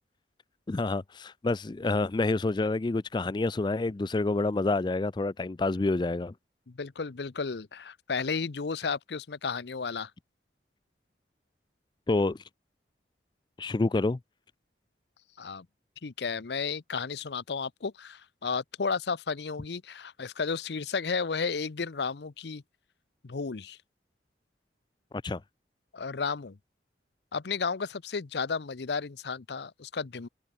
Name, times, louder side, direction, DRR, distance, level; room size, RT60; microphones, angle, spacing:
voice 1, 0.7-6.3 12.1-12.4 13.6-14.2 25.2-25.4, left 2 dB, 25° left, 0.4 m, -28 dB
voice 2, 6.7-10.1 15.4-15.7 16.0-22.6 23.2-23.8 25.9-26.6 27.3-30.3, left 5 dB, 70° left, 0.7 m, -33 dB
open air
head